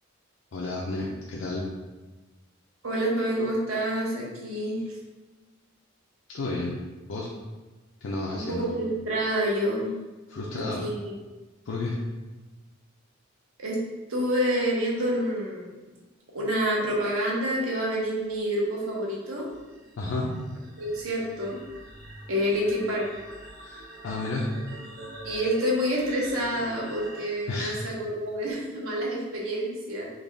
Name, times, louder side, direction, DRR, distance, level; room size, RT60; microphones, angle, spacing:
voice 1, 0.5-1.7 6.3-6.7 7.1-7.3 8.0-8.7 10.3-10.9 11.7-12.0 20.0-20.4 23.6-24.5 27.5-27.8, left 2 dB, 65° left, -4 dB, 0.4 m, -31 dB
voice 2, 2.8-4.8 8.3-9.9 10.5-11.0 13.6-13.8 14.1-15.7 16.3-19.5 20.8-21.6 22.3-23.1 25.2-30.1, equal, 80° right, -3 dB, 0.9 m, -28 dB
sound 1, 18.0-27.3, right 1 dB, 45° right, 0.6 m, -45 dB
3.8 x 2.3 x 3.3 m, 1.2 s
head